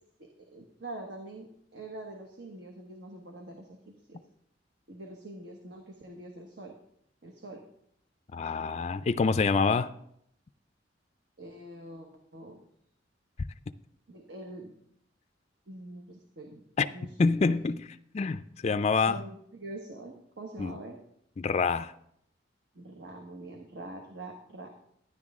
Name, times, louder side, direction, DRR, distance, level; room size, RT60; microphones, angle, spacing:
voice 1, 0.2-3.8 4.1-4.2 4.9-6.7 7.2-7.6 11.4-12.6 14.1-14.7 15.7-16.6 16.9-17.1 17.5-17.6 18.9-21.0 22.7-24.7, right 2 dB, 65° right, 1.3 m, -44 dB
voice 2, 8.3-9.9 16.8-16.9 17.2-17.9 18.1-19.2 20.6-20.8 21.4-21.9, left 4 dB, 35° left, 0.4 m, -26 dB
12.0 x 10.0 x 3.6 m
head